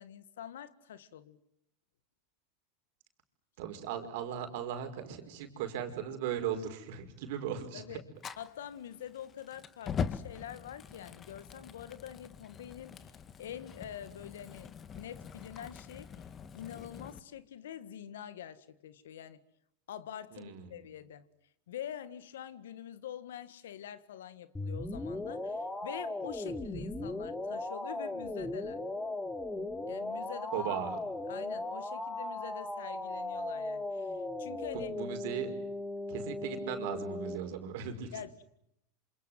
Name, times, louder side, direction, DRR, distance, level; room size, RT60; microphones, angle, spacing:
voice 1, 0.0-1.4 7.7-8.1 8.4-13.1 13.4-16.1 16.5-19.4 19.9-21.3 21.7-28.8 29.9-30.8 31.3-34.9 38.1-38.4, left 10 dB, 85° left, 1.8 m, -45 dB
voice 2, 3.6-8.0 20.3-20.7 30.5-31.0 34.7-35.6 36.1-38.2, right 9 dB, 70° right, 5.1 m, -38 dB
Fire, 8.2-17.2, left 6 dB, 30° left, 1.8 m, -43 dB
sound 1, 24.5-37.4, left 2 dB, 10° left, 2.9 m, -37 dB
27.5 x 27.0 x 7.7 m
hypercardioid pair, 110°, 0 cm